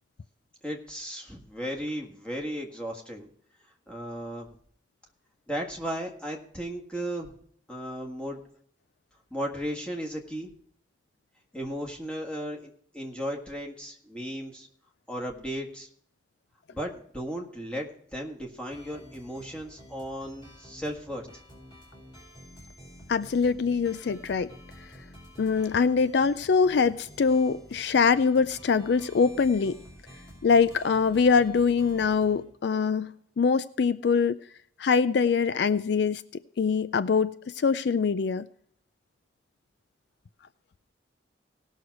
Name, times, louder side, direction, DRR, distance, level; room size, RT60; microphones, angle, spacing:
voice 1, 0.6-3.3 3.9-4.5 5.5-7.3 7.7-8.4 9.3-10.5 11.5-14.7 15.1-15.9 16.7-21.4, equal, 5° left, 0 dB, 1.7 m, -35 dB
sound 1, 18.7-32.4, equal, 25° left, 4.6 m, -50 dB
voice 2, 23.1-24.5 25.4-29.8 30.4-34.4 34.8-36.2 36.6-38.5, left 5 dB, 60° left, 14 dB, 0.4 m, -23 dB
18.0 x 6.4 x 4.7 m, 0.63 s
head